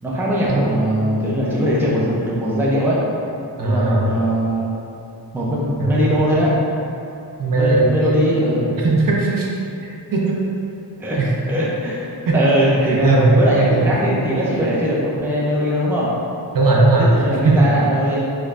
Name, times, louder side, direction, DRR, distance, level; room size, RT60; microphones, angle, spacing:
voice 1, 0.0-3.0 3.6-4.7 5.3-6.5 7.5-8.7 11.0-11.2 11.5-16.1 17.0-18.2, equal, 5° right, -6 dB, 0.4 m, -20 dB
voice 2, 3.6-4.1 5.8-6.3 7.4-7.9 8.8-9.5 10.1-10.2 11.2-11.3 12.3-12.4 12.9-14.0 16.5-17.1 17.4-17.5, right 3 dB, 55° right, -3 dB, 0.5 m, -17 dB
3.3 x 3.1 x 2.4 m, 2.7 s
wide cardioid pair, 135°, 40 cm